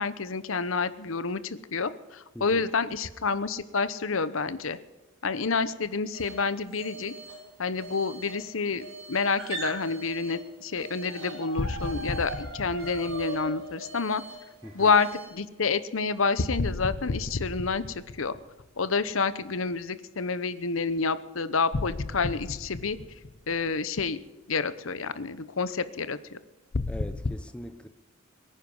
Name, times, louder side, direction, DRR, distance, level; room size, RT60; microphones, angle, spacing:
voice 1, 0.0-4.8 5.2-7.1 7.6-14.2 14.7-18.3 18.8-23.0 23.5-24.2 24.5-26.4, left 4 dB, 70° left, 0.9 m, -28 dB
sound 1, 6.1-6.5 6.7-7.5 7.8-10.5 10.8-15.3, right 2 dB, 75° right, 4.6 m, -40 dB
sound 2, 11.6-13.6 16.6-18.9 21.7-23.8 26.7-27.4, left 3 dB, 50° left, 0.6 m, -33 dB
voice 2, 26.9-27.9, equal, 5° left, 0.6 m, -41 dB
23.0 x 10.0 x 5.5 m
head